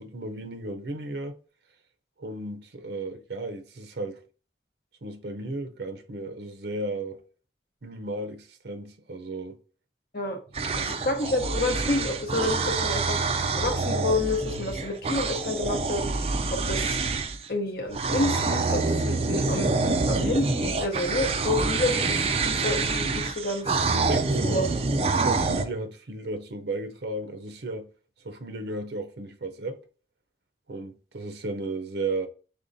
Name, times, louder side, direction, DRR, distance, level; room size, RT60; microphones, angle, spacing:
voice 1, 0.0-1.4 2.2-4.2 5.0-7.2 7.8-9.6 10.8-11.0 24.1-24.6 25.1-27.9 28.2-29.8 30.7-32.3, right 2 dB, 75° right, 0.6 m, -34 dB
sound 1, 10.5-17.5 17.9-25.6, right 3 dB, 35° right, 0.4 m, -26 dB
voice 2, 10.8-17.0 17.5-19.8 20.1-23.7 24.4-24.7, left 2 dB, 55° left, 1.0 m, -29 dB
5.3 x 3.7 x 2.6 m
head